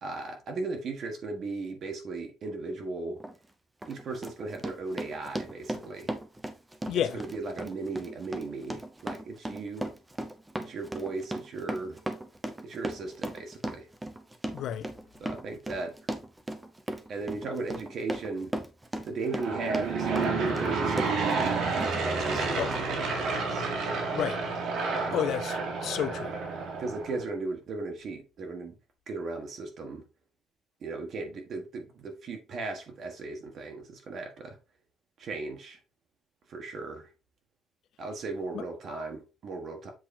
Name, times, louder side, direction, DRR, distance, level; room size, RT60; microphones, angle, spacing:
voice 1, 0.0-3.2 3.9-6.1 6.9-9.9 10.6-12.0 12.6-13.9 15.2-16.0 17.1-18.5 19.0-21.6 22.0-23.7 24.9-25.2 26.8-28.8 29.1-30.0 30.8-34.6 35.2-35.8 36.5-37.1 38.0-39.9, right 3 dB, 40° right, 1.6 m, -37 dB
Run, 3.2-3.3 3.8-21.5 21.8-22.4 22.7-22.8, right 1 dB, 10° right, 0.7 m, -36 dB
voice 2, 14.5-14.9 22.5-22.7 24.1-24.4 25.1-26.3 38.5-38.6, left 10 dB, 55° left, 0.5 m, -31 dB
Aircraft / Engine, 19.2-27.2, right 4 dB, 65° right, 2.1 m, -30 dB
7.8 x 4.1 x 4.3 m
cardioid pair, 175°, 0 cm